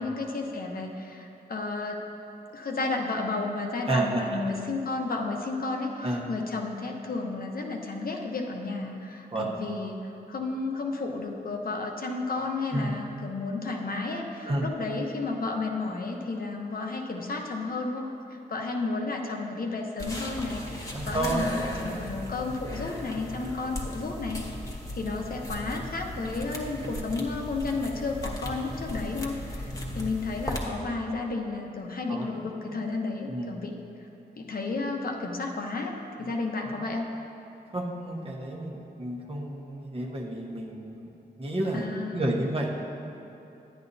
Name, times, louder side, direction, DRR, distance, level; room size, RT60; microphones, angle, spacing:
voice 1, 0.0-2.0 2.5-24.4 24.9-34.1 34.4-35.9 36.2-37.1 41.7-42.3, left 3 dB, 60° left, 1 dB, 0.9 m, -32 dB
voice 2, 3.9-4.3 6.0-6.3 9.3-9.5 12.7-13.0 14.5-14.7 20.7-21.5 21.7-22.2 29.7-30.1 32.1-32.3 33.3-33.6 37.7-41.1 41.4-42.7, right 1 dB, 35° right, -2 dB, 1.2 m, -31 dB
sound 1, 20.0-30.7, left 1 dB, 20° left, 1.2 m, -37 dB
11.0 x 9.8 x 2.7 m, 2.8 s
wide cardioid pair, 90°, 17 cm